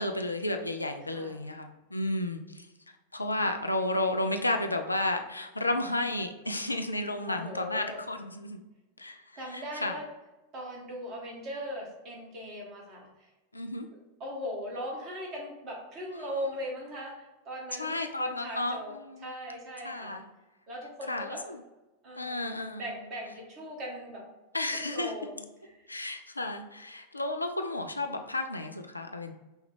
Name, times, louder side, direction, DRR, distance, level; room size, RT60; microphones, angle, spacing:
voice 1, 0.0-2.7 3.1-8.6 9.0-10.0 13.5-13.9 17.7-19.3 19.8-20.2 21.1-21.6 22.2-22.8 24.5-25.3 25.9-29.3, left 2 dB, 85° left, 5 dB, 0.4 m, -32 dB
voice 2, 1.1-1.4 7.3-8.0 9.4-10.1 10.5-13.3 14.2-18.9 19.2-20.2 20.7-21.4 22.0-24.2 24.7-25.9, equal, 35° right, -2 dB, 1.3 m, -39 dB
5.4 x 2.3 x 3.4 m, 1.1 s
figure-of-eight pair, 90°, 0 cm